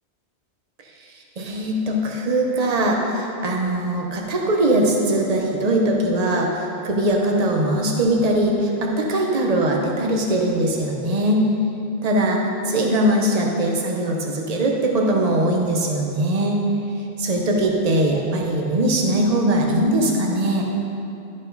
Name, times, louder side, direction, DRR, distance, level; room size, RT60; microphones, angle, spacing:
voice 1, 1.4-11.4 12.0-12.4 12.7-16.6 17.2-20.6, right 1 dB, 40° right, 0 dB, 1.0 m, -21 dB
12.0 x 5.4 x 3.9 m, 2.7 s
omnidirectional pair, 1.1 m